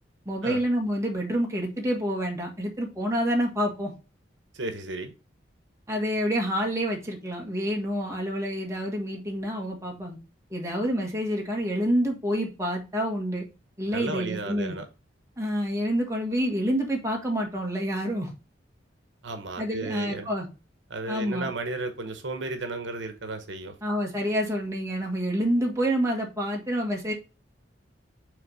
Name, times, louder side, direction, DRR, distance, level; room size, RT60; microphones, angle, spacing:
voice 1, 0.2-3.9 5.9-10.2 10.5-13.5 13.8-14.8 15.4-18.3 19.6-20.5 21.1-21.5 23.8-27.1, equal, 15° right, 0 dB, 1.7 m, -28 dB
voice 2, 4.5-5.1 13.9-14.9 19.2-20.3 20.9-23.7, right 2 dB, 80° right, 7 dB, 1.0 m, -33 dB
6.4 x 3.5 x 5.4 m, 0.31 s
head